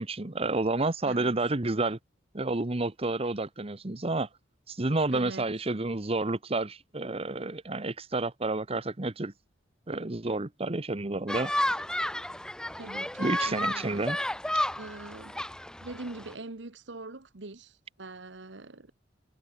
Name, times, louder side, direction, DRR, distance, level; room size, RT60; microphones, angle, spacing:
voice 1, 0.0-2.0 2.3-4.3 4.7-9.3 9.9-11.5 13.2-14.2, right 2 dB, 30° right, 1.1 m, -30 dB
voice 2, 5.1-5.5 12.8-14.0 14.8-15.4 15.8-18.9, right 2 dB, 75° right, 1.4 m, -43 dB
sound 1, 11.3-16.3, left 1 dB, 5° left, 0.7 m, -32 dB
head